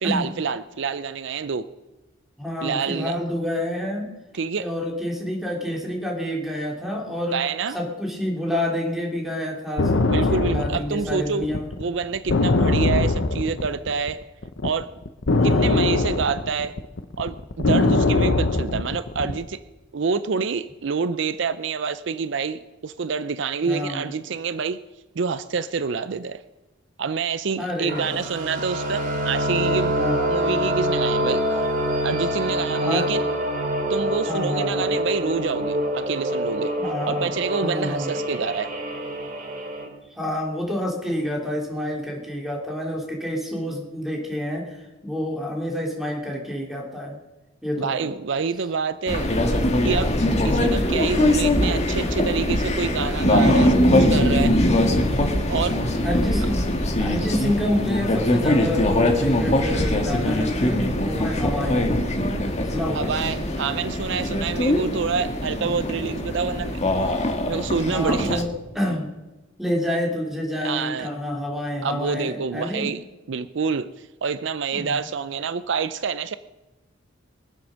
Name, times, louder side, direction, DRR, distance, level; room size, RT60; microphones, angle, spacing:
voice 1, 0.0-1.7 2.6-3.1 4.3-4.7 7.3-7.8 10.1-11.5 11.8-14.2 14.6-14.9 15.4-16.8 17.2-19.6 19.9-24.8 25.2-26.4 27.0-30.0 30.3-31.7 32.0-33.2 33.9-36.7 37.1-38.7 47.8-49.3 49.8-50.1 50.4-54.6 55.5-55.8 62.9-66.8 67.5-68.4 70.6-71.1 71.8-73.0 73.3-76.4, right 5 dB, 65° right, 13 dB, 0.5 m, -27 dB
voice 2, 2.4-4.1 4.5-7.4 7.7-11.7 12.6-12.8 15.4-15.9 17.7-18.1 23.6-24.1 27.6-28.3 30.0-30.3 31.6-31.7 32.7-33.1 34.3-34.9 36.8-37.3 37.6-38.2 40.1-47.2 47.6-48.1 50.2-50.6 55.7-56.6 57.0-61.9 62.7-63.1 65.6-65.8 67.9-68.5 68.7-69.1 69.6-72.9 74.7-75.0, left 1 dB, ahead, -1 dB, 3.0 m, -28 dB
sound 1, 9.8-14.1 14.4-19.4, left 2 dB, 70° left, 0.8 m, -21 dB
sound 2, 27.9-39.9, equal, 45° right, 2.7 m, -26 dB
sound 3, 49.1-68.4, left 1 dB, 35° left, 1.7 m, -22 dB
23.5 x 7.8 x 6.4 m, 1.1 s
head